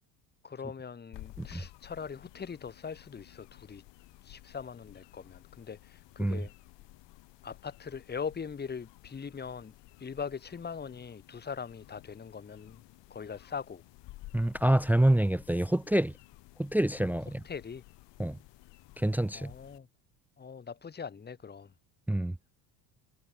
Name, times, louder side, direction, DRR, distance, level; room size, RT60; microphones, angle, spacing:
voice 1, 0.4-3.8 4.2-6.5 7.4-9.7 10.0-12.8 13.1-13.8 17.4-17.8 19.3-19.9 20.4-21.7, left 6 dB, 20° left, 2.0 m, -41 dB
sound 1, 1.1-19.8, left 20 dB, 60° left, 2.6 m, -54 dB
voice 2, 14.3-16.1 16.6-17.4 18.2-18.4 19.0-19.5 22.1-22.3, right 1 dB, 5° right, 0.7 m, -26 dB
supercardioid pair, 110°, 48 cm